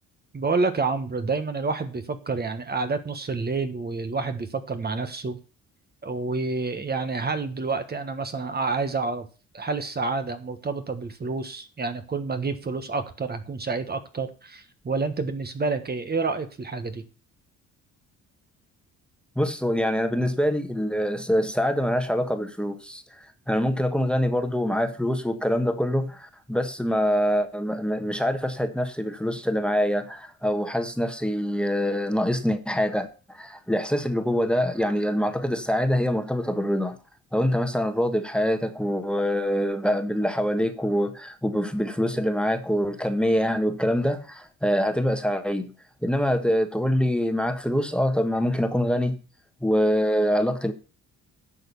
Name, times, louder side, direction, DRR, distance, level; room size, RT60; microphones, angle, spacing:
voice 1, 0.3-5.4 6.0-9.3 9.5-17.0, right 4 dB, 30° right, 1.4 m, -28 dB
voice 2, 19.3-37.0 37.3-45.7 46.0-49.2 49.6-50.7, equal, 5° left, 1.5 m, -25 dB
11.0 x 6.4 x 7.1 m
cardioid pair, 90°, 30 cm